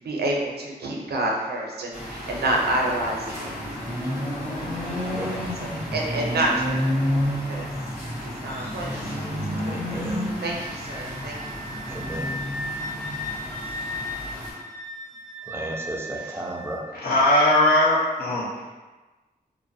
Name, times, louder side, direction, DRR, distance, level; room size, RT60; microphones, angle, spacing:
voice 1, 0.0-3.6 3.9-6.7 7.1-7.2 7.5-7.7 8.2-8.9 9.5-10.0 10.4-11.6, right 1 dB, 75° right, -1 dB, 0.5 m, -29 dB
sound 1, 1.9-14.5, equal, 50° left, 1.3 m, -30 dB
voice 2, 5.1-5.5 8.6-8.7 9.6-10.2 11.8-12.3 15.4-16.9, right 1 dB, 15° right, -1 dB, 0.3 m, -34 dB
Wind instrument woodwind instrument, 10.4-16.8, left 1 dB, 25° left, 1.2 m, -36 dB
voice 3, 16.9-18.5, left 1 dB, 65° left, -7 dB, 0.8 m, -19 dB
2.5 x 2.0 x 2.6 m, 1.2 s
wide cardioid pair, 105°, 17 cm